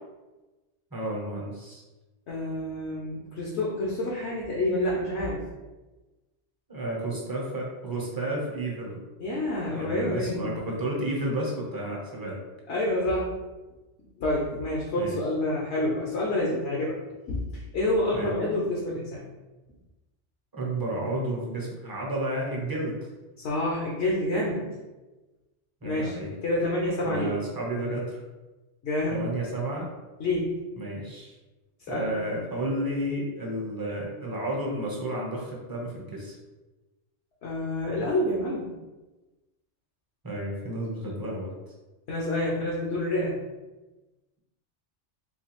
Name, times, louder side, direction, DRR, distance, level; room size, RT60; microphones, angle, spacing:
voice 1, 0.9-1.8 6.7-9.0 9.7-12.4 14.9-15.1 18.1-18.3 20.5-23.0 25.8-26.3 27.0-28.2 29.1-29.9 30.8-31.4 31.9-36.4 40.2-41.5, right 1 dB, 25° right, -3 dB, 0.6 m, -31 dB
voice 2, 2.3-5.4 9.2-10.5 12.7-13.3 14.2-17.0 17.3-19.2 23.4-24.7 25.8-26.1 26.4-27.4 28.8-29.2 30.2-30.6 31.9-32.1 37.4-38.7 42.1-43.4, left 1 dB, 70° left, -4 dB, 1.0 m, -28 dB
3.9 x 2.3 x 2.9 m, 1.1 s
omnidirectional pair, 1.2 m